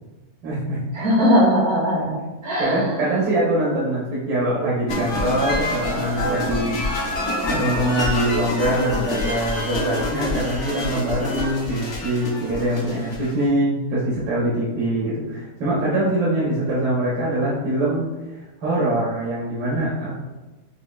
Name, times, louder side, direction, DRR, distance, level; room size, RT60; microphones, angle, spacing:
voice 1, 0.4-0.8 2.6-6.8 7.5-20.2, right 1 dB, 75° right, -7 dB, 1.4 m, -23 dB
voice 2, 0.9-2.9, equal, 40° right, -4 dB, 0.6 m, -20 dB
sound 1, 4.9-13.5, left 2 dB, 50° left, 1.0 m, -26 dB
5.0 x 2.8 x 2.3 m, 1.2 s
omnidirectional pair, 1.8 m